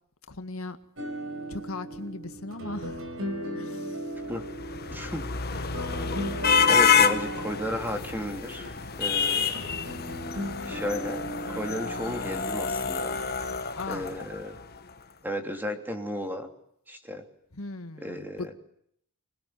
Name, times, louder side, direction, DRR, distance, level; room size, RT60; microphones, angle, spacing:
voice 1, 0.3-0.8 1.5-3.1 3.5-4.2 4.8-5.1 5.7-5.8 10.6-10.9 11.7-11.8 13.7-14.2 17.5-18.2, left 2 dB, 70° left, 1.9 m, -39 dB
sound 1, 1.0-13.4, equal, 65° right, 5.1 m, -37 dB
sound 2, 4.3-14.6, left 6 dB, 45° left, 1.5 m, -28 dB
voice 2, 4.9-5.3 6.7-8.7 9.0-9.6 10.6-13.2 13.9-14.6 15.2-16.5 16.9-17.3 18.0-18.5, equal, 10° right, 2.9 m, -34 dB
26.5 x 20.5 x 9.4 m
head